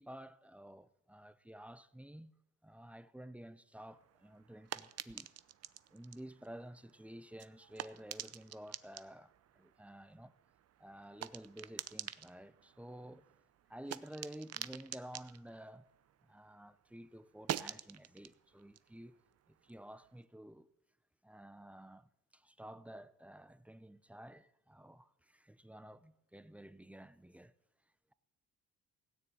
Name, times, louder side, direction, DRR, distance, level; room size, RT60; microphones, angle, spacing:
voice 1, 0.0-2.3 2.6-5.3 5.9-10.3 10.8-13.2 13.7-15.9 16.2-19.2 19.5-20.7 21.2-27.5, right 1 dB, 5° right, 0.6 m, -52 dB
sound 1, 3.9-16.6 16.9-20.2, right 11 dB, 55° right, 0.7 m, -48 dB
16.5 x 6.7 x 8.8 m
cardioid pair, 90°, 30 cm